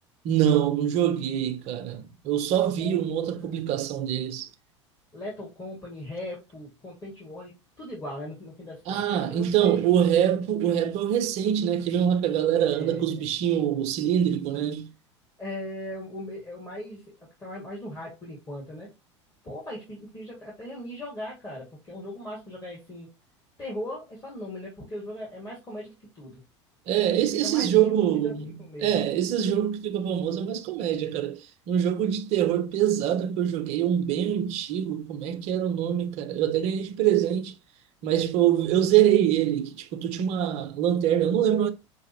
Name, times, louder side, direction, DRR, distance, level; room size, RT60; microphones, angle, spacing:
voice 1, 0.2-4.5 8.9-14.9 26.9-28.5 28.8-31.4 31.7-37.5 38.0-41.7, right 10 dB, 45° right, 0.7 m, -24 dB
voice 2, 5.1-9.8 12.7-13.4 15.4-17.1 17.4-18.9 19.4-23.1 23.6-26.4 27.1-29.0, left 1 dB, 20° left, 1.9 m, -39 dB
5.8 x 2.4 x 2.9 m
figure-of-eight pair, 75°, 15 cm